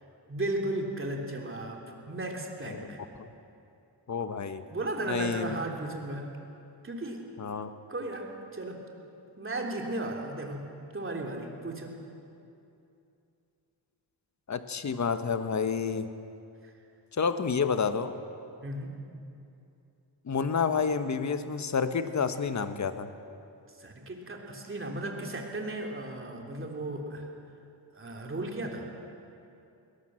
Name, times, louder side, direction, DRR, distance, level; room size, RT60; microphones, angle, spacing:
voice 1, 0.3-3.0 4.7-6.4 6.8-7.2 7.9-8.8 9.4-11.9 16.6-16.7 18.6-19.0 23.8-27.3 27.9-28.9, right 2 dB, 30° right, 1 dB, 3.3 m, -35 dB
voice 2, 4.1-4.6 5.1-5.6 7.4-7.7 14.5-16.1 17.2-18.1 20.2-23.1, left 5 dB, 40° left, 10 dB, 1.2 m, -29 dB
21.0 x 18.5 x 7.7 m, 2.7 s
cardioid pair, 100°, 42 cm